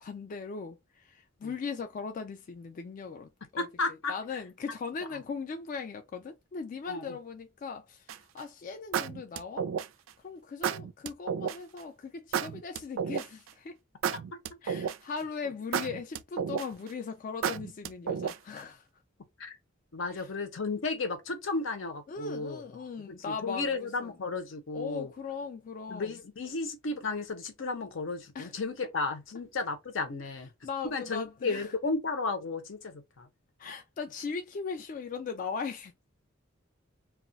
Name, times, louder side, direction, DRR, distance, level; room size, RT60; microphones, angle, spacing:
voice 1, 0.0-3.7 4.1-9.7 10.2-13.8 14.6-18.9 20.1-20.3 22.1-24.2 24.7-26.2 28.3-28.5 30.2-31.7 33.6-35.9, left 5 dB, 45° left, 0.3 m, -39 dB
voice 2, 3.6-4.1 6.9-7.2 19.4-19.6 19.9-22.6 23.1-25.1 25.9-30.5 30.8-33.3, left 3 dB, 75° left, 0.7 m, -33 dB
sound 1, 8.1-8.4 8.9-10.1 10.6-11.6 12.3-13.5 14.0-15.2 15.7-16.9 17.4-18.6, right 7 dB, 85° right, 0.3 m, -32 dB
2.3 x 2.0 x 3.8 m
head